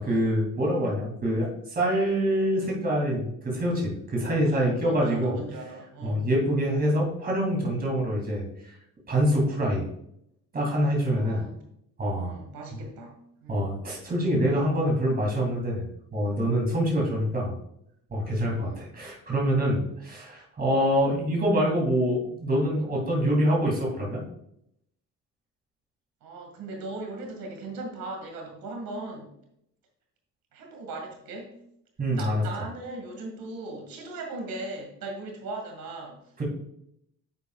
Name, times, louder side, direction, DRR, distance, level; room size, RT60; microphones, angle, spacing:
voice 1, 0.0-5.4 6.0-8.7 9.1-9.8 10.5-11.4 12.0-12.3 13.5-15.8 16.1-17.5 18.1-24.2 32.0-32.4 36.4-36.5, equal, 25° right, -2 dB, 2.9 m, -25 dB
voice 2, 4.4-6.3 11.2-11.7 12.2-13.1 13.4-13.8 18.5-18.9 26.2-29.3 30.5-31.5 32.1-36.2, right 2 dB, 80° right, 2 dB, 2.2 m, -38 dB
9.8 x 8.1 x 2.4 m, 0.76 s
cardioid pair, 175°, 34 cm